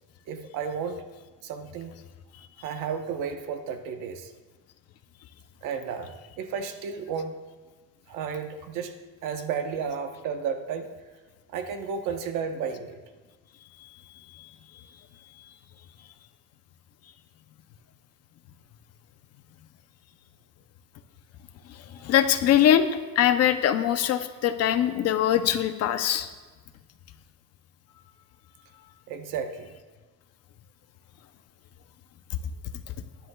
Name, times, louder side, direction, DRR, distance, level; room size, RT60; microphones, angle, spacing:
voice 1, 0.3-1.0 1.4-1.9 2.6-4.3 5.6-7.4 8.1-9.0 9.2-10.9 11.5-13.0 22.0-22.1 29.1-29.8, right 6 dB, 60° right, 7 dB, 1.1 m, -33 dB
voice 2, 21.7-22.9 23.2-26.3, left 10 dB, 45° left, 9 dB, 0.7 m, -22 dB
21.0 x 10.5 x 2.3 m, 1.3 s
cardioid pair, 165°, 35 cm